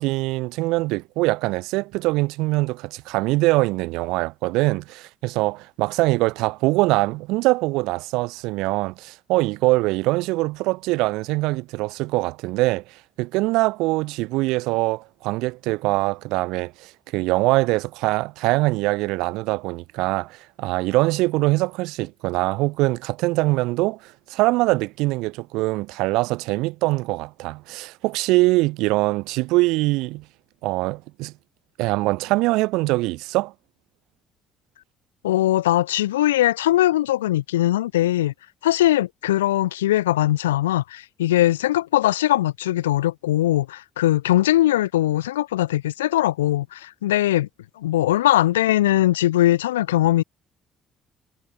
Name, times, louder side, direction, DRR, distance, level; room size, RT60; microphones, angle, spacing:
voice 1, 0.0-12.8 13.2-30.2 30.6-31.3 31.8-33.5, right 21 dB, 75° right, 0.5 m, -23 dB
voice 2, 35.2-38.3 38.6-47.5 47.8-50.2, left 14 dB, 90° left, 0.9 m, -20 dB
hypercardioid pair, 50°, 0 cm